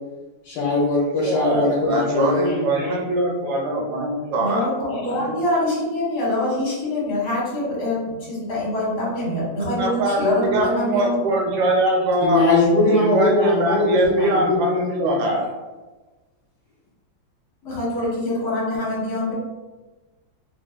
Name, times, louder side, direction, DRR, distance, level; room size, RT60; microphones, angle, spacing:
voice 1, 0.4-2.7 12.2-15.2, left 2 dB, 70° left, -6 dB, 1.2 m, -20 dB
voice 2, 1.0-4.7 5.0-5.3 9.8-12.4 12.9-15.4, right 1 dB, 75° right, 0 dB, 1.3 m, -22 dB
voice 3, 2.0-3.0 4.4-11.3 17.6-19.3, left 1 dB, 50° left, -6 dB, 1.4 m, -25 dB
3.3 x 2.3 x 2.3 m, 1.2 s
omnidirectional pair, 2.2 m